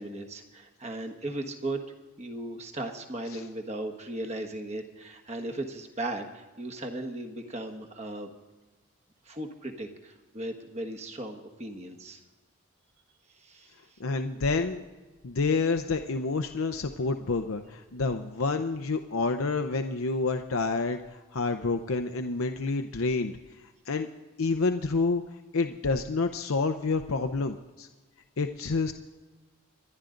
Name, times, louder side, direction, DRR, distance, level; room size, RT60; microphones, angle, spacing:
voice 1, 0.0-1.9 2.2-8.3 9.3-12.2 13.4-13.7, right 1 dB, 30° right, 5 dB, 1.4 m, -37 dB
voice 2, 14.0-14.8 15.2-23.4 23.9-24.1 24.4-25.2 25.5-27.9 28.4-28.9, left 3 dB, 80° left, 7 dB, 0.7 m, -28 dB
26.0 x 11.0 x 3.9 m, 1.2 s
head